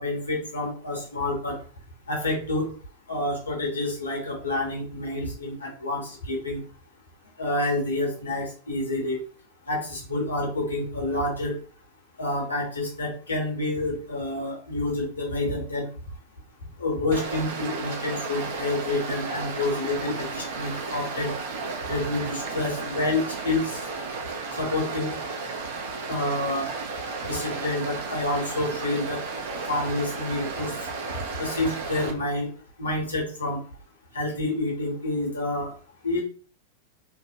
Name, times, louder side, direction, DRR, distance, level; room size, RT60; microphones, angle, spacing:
voice 1, 0.0-1.6 2.1-2.7 3.1-6.6 7.4-9.2 9.7-11.6 12.2-15.9 16.8-21.3 21.8-23.9 24.6-25.1 26.1-26.7 27.2-29.2 29.7-30.7 31.4-32.5 32.8-33.6 34.1-35.8 36.0-36.2, left 2 dB, 75° left, 0 dB, 0.9 m, -28 dB
Stream, 17.1-32.1, right 4 dB, 55° right, 0.5 m, -33 dB
2.6 x 2.1 x 2.7 m, 0.41 s
figure-of-eight pair, 90°, 0 cm